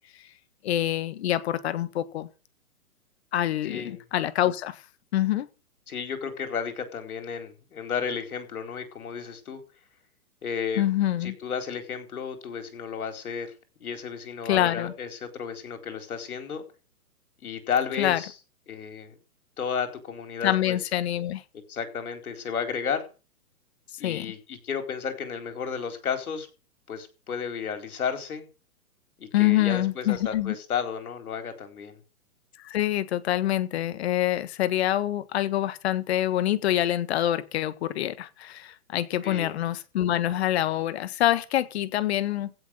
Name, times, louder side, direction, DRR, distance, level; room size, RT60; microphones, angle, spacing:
voice 1, 0.6-2.3 3.3-4.8 5.1-5.5 10.8-11.3 14.5-14.9 18.0-18.2 20.4-21.4 24.0-24.3 29.3-30.5 32.6-42.6, left 13 dB, 45° left, 1.4 m, -26 dB
voice 2, 3.6-4.0 5.9-9.6 10.4-10.8 11.2-16.6 17.4-18.3 18.7-19.1 19.6-20.8 21.7-23.0 24.0-26.5 26.9-28.5 29.2-32.0 39.2-39.5, left 6 dB, 75° left, 4.4 m, -33 dB
16.0 x 6.6 x 7.6 m
hypercardioid pair, 145°, 44 cm